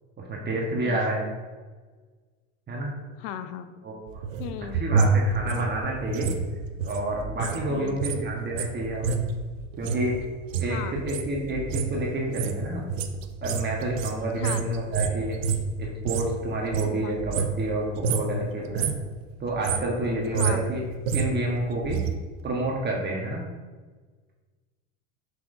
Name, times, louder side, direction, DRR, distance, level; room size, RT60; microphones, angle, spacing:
voice 1, 0.2-1.3 2.7-2.9 3.8-4.2 4.7-6.3 6.9-9.2 9.8-10.1 10.6-12.9 13.4-15.4 15.8-18.9 19.4-20.9 21.1-22.0 22.4-23.4, right 1 dB, 25° right, -2 dB, 1.2 m, -29 dB
voice 2, 3.2-3.7 4.4-4.8 7.7-8.0 10.7-10.9 14.3-14.6 17.0-17.2 20.3-20.7, left 10 dB, 70° left, 10 dB, 0.7 m, -35 dB
sound 1, 4.1-7.6 7.9-16.4 16.6-17.7 18.0-18.3 18.6-19.1 19.5-22.1 22.4-22.5, right 5 dB, 85° right, 0.7 m, -28 dB
6.1 x 5.9 x 2.6 m, 1.4 s
hypercardioid pair, 85°, 38 cm